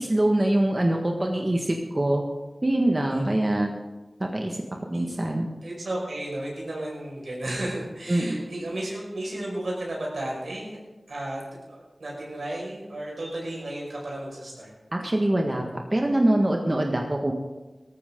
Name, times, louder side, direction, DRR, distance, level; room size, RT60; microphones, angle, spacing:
voice 1, 0.0-2.2 2.6-3.8 4.2-4.6 4.9-5.5 8.1-8.4 14.9-17.3, right 1 dB, 40° right, 1 dB, 1.7 m, -24 dB
voice 2, 3.1-3.6 4.9-5.1 5.6-10.8 11.1-14.7, right 1 dB, 90° right, -3 dB, 5.6 m, -34 dB
18.0 x 14.5 x 3.9 m, 1.1 s
wide cardioid pair, 45°, 0 cm